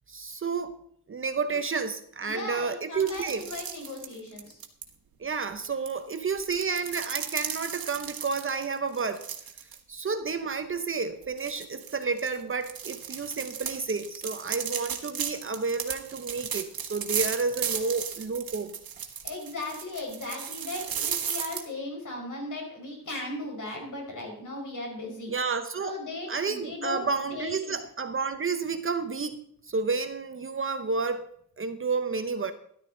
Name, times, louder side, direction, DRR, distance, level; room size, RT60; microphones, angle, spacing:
voice 1, 0.1-0.8 1.1-3.5 5.2-9.2 9.9-18.7 25.3-25.9 26.3-31.3 31.6-32.5, right 4 dB, 35° right, 9 dB, 0.9 m, -30 dB
voice 2, 2.2-4.6 19.2-25.3 25.8-27.8, left 2 dB, 55° left, 0 dB, 4.9 m, -37 dB
sound 1, 3.0-4.8 5.6-9.8 10.1-10.3 10.8-10.9 11.4-21.6, right 8 dB, 70° right, 1.6 m, -35 dB
13.0 x 12.0 x 3.9 m, 0.65 s
wide cardioid pair, 155°, 37 cm